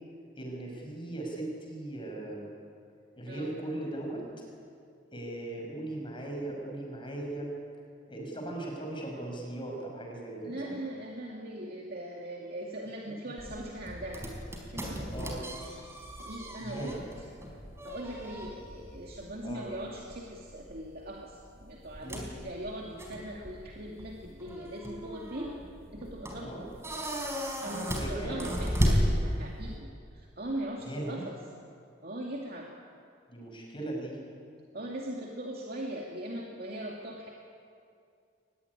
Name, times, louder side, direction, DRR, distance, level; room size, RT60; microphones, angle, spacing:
voice 1, 0.4-2.5 3.2-4.2 5.1-7.5 8.1-10.7 15.1-15.4 16.6-17.0 19.4-19.6 22.0-22.2 26.4-26.6 27.9-28.4 30.8-31.2 33.3-34.2, right 1 dB, 25° left, 0 dB, 6.5 m, -38 dB
voice 2, 3.3-3.6 10.5-14.3 14.7-15.4 16.2-17.3 17.8-25.5 25.9-26.6 27.6-31.4 32.0-32.7 34.7-37.3, right 1 dB, 55° right, -1 dB, 2.5 m, -40 dB
sound 1, 13.4-29.8, equal, 15° right, 4.6 m, -35 dB
23.5 x 21.0 x 10.0 m, 2.4 s
head